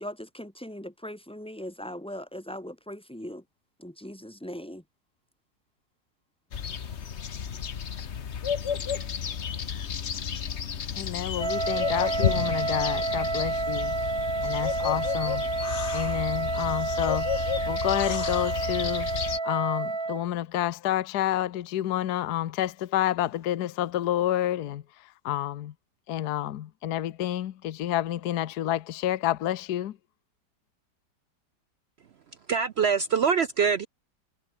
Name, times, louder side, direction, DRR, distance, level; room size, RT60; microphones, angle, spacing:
voice 1, 0.0-3.4 3.8-4.8, equal, 5° left, 5.0 m, -39 dB
sound 1, 6.5-19.4, left 7 dB, 45° left, 1.2 m, -32 dB
voice 2, 11.0-13.9 14.4-19.1 19.4-25.7 26.1-30.0, left 12 dB, 70° left, 1.3 m, -29 dB
Wind instrument woodwind instrument, 11.4-20.3, right 3 dB, 20° right, 0.9 m, -29 dB
voice 3, 32.5-33.9, right 6 dB, 70° right, 0.6 m, -24 dB
omnidirectional pair, 1.9 m